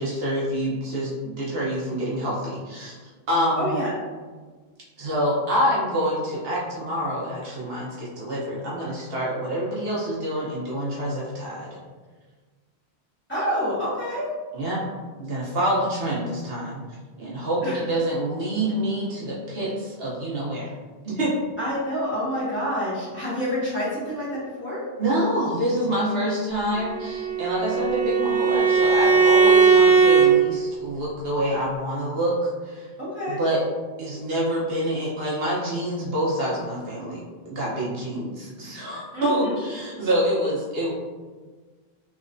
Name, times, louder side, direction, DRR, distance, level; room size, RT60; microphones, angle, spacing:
voice 1, 0.0-3.0 3.3-3.8 5.0-11.7 14.5-14.8 15.2-16.8 17.2-20.7 21.0-21.3 25.0-32.9 33.3-33.6 34.0-40.9, equal, 70° right, -6 dB, 1.1 m, -26 dB
voice 2, 3.6-3.9 13.3-14.3 17.6-17.8 21.6-24.8 33.0-33.4 39.1-39.6, equal, 10° left, -12 dB, 1.5 m, -27 dB
Bowed string instrument, 26.8-30.3, right 5 dB, 15° right, 0.3 m, -18 dB
3.3 x 3.0 x 2.5 m, 1.4 s
omnidirectional pair, 1.1 m